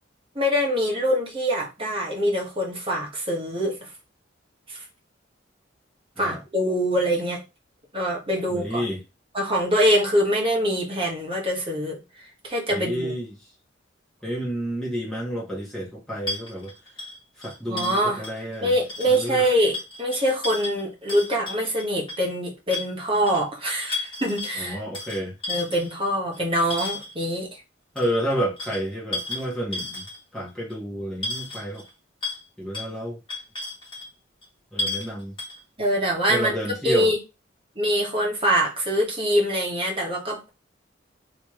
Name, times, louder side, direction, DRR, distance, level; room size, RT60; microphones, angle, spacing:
voice 1, 0.3-3.8 4.7-4.8 6.2-7.4 7.9-8.8 9.3-12.0 12.4-13.1 17.7-18.2 18.6-24.8 25.5-27.5 35.8-36.5 36.8-37.2 37.8-40.5, equal, 30° right, 1.5 m, -24 dB
voice 2, 8.5-9.0 12.7-13.4 14.2-16.7 17.4-18.7 19.0-19.4 24.5-25.3 27.9-30.0 30.3-31.8 32.6-33.2 34.7-35.3 36.3-37.1, right 1 dB, 5° left, 1.5 m, -30 dB
sound 1, 16.3-18.6 18.8-19.3 19.7-22.3 22.7-23.4 23.8-24.6 24.9-27.2 28.0-30.4 30.7-30.8 31.2-31.9 32.2-32.4 32.7-32.9 33.3-34.1 34.4-34.5 34.8-35.1 35.4-35.6, left 3 dB, 25° left, 1.7 m, -33 dB
3.2 x 3.2 x 3.1 m
head